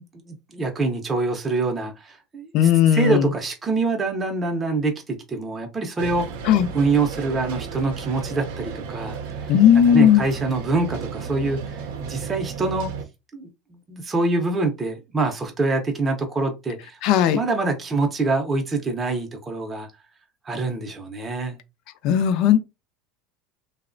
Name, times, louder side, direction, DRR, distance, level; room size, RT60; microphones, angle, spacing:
voice 1, 0.3-6.3 6.7-12.9 13.3-17.0 17.3-19.9 20.4-21.6, right 3 dB, 20° right, 0.6 m, -25 dB
voice 2, 2.5-3.3 6.5-6.7 9.5-10.2 17.0-17.4 22.0-22.6, left 9 dB, 55° left, 0.4 m, -16 dB
sound 1, 6.0-13.0, right 6 dB, 80° right, 0.6 m, -33 dB
3.0 x 2.0 x 2.5 m
supercardioid pair, 135°, 0 cm